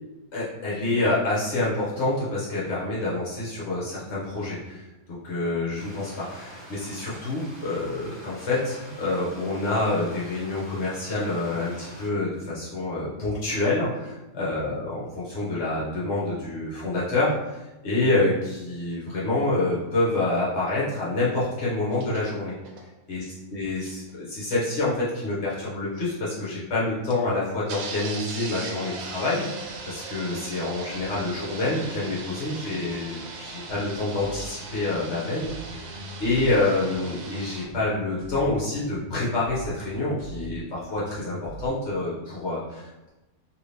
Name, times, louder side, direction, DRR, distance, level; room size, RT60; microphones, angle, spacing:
voice 1, 0.3-22.5 23.1-23.2 23.5-35.5 35.9-43.1, left 2 dB, 60° left, -7 dB, 0.9 m, -27 dB
Stream, 5.7-12.1, equal, 10° right, 0.8 m, -45 dB
sound 1, 18.9-19.0 21.9-22.3 22.7-22.8 23.2-23.3 23.7-24.1 24.5-24.6 25.2-25.3 26.1-26.2 27.1-27.2 27.7-37.7, right 4 dB, 80° right, 1.0 m, -39 dB
sound 2, 33.7-41.7, right 1 dB, 55° right, 1.2 m, -41 dB
2.7 x 2.7 x 3.2 m, 1.0 s
omnidirectional pair, 1.5 m